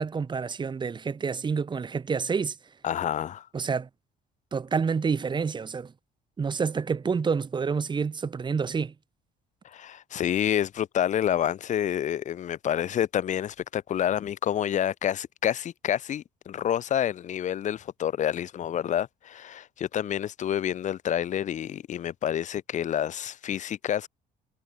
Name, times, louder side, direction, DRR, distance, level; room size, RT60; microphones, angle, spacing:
voice 1, 0.0-2.6 3.5-3.9 4.5-5.9 6.4-8.9, right 5 dB, 25° right, 1.3 m, -28 dB
voice 2, 2.8-3.5 9.6-24.1, left 10 dB, 45° left, 0.7 m, -28 dB
cardioid pair, 110°, 17 cm